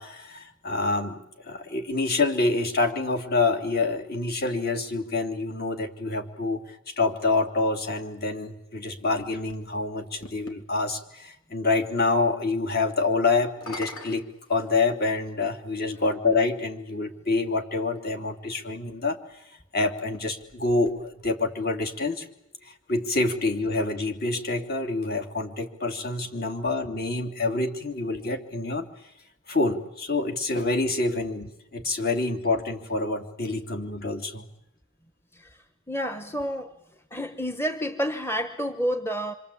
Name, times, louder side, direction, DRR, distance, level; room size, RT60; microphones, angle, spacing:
voice 1, 0.0-14.2 14.5-19.4 19.7-22.3 22.6-28.9 29.5-34.5, left 3 dB, 50° left, 6 dB, 3.1 m, -27 dB
sound 1, 8.8-10.6 13.4-15.2 16.2-16.3 20.0-21.5, left 2 dB, 75° left, 3.9 m, -44 dB
voice 2, 35.3-36.7 37.1-39.3, equal, 10° left, 9 dB, 1.1 m, -30 dB
26.5 x 25.5 x 8.6 m, 0.82 s
head